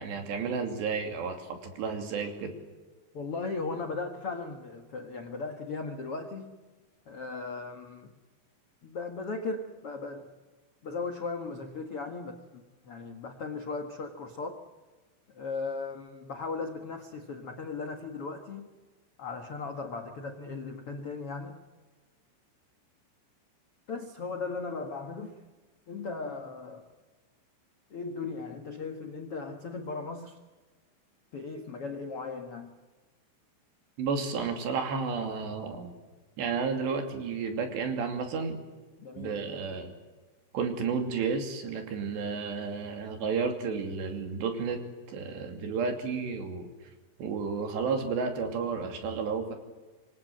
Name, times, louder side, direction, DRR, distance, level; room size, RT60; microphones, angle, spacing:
voice 1, 0.0-2.5 34.0-35.9 36.4-38.6 39.2-39.9 40.5-44.8 45.1-46.7 47.2-49.5, right 5 dB, 65° right, 5 dB, 4.8 m, -32 dB
voice 2, 3.1-6.6 7.0-8.1 8.8-10.3 10.8-14.6 15.3-18.7 19.2-21.6 23.9-25.4 25.9-26.9 27.9-30.4 31.3-32.7 39.0-39.4, left 4 dB, 70° left, 5 dB, 1.3 m, -37 dB
26.5 x 23.5 x 7.8 m, 1.3 s
omnidirectional pair, 5.4 m